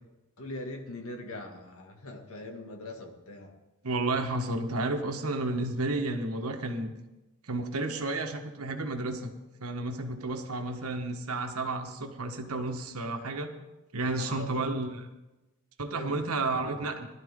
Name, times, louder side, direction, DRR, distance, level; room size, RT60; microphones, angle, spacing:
voice 1, 0.4-3.5 14.2-14.7 16.0-16.2, left 2 dB, 70° left, 2 dB, 2.2 m, -41 dB
voice 2, 3.8-6.9 7.5-9.3 9.6-13.5 13.9-15.0 15.8-17.1, right 2 dB, 85° right, 5 dB, 1.5 m, -31 dB
19.5 x 12.5 x 3.8 m, 1.0 s
head